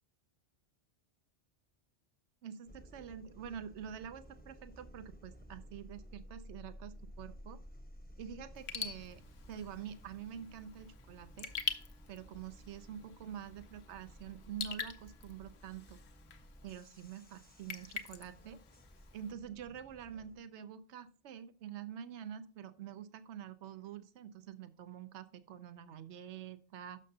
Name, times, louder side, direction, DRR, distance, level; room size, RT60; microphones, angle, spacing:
voice 1, 2.4-7.6 8.2-9.2 9.5-11.5 12.1-16.0 16.6-18.6 19.1-27.0, right 9 dB, 80° right, 11 dB, 1.0 m, -47 dB
sound 1, 2.7-20.4, equal, 10° left, 0.8 m, -55 dB
Raindrop / Drip, 8.5-19.3, left 6 dB, 70° left, 1.0 m, -46 dB
12.0 x 6.4 x 2.8 m, 0.38 s
omnidirectional pair, 1.2 m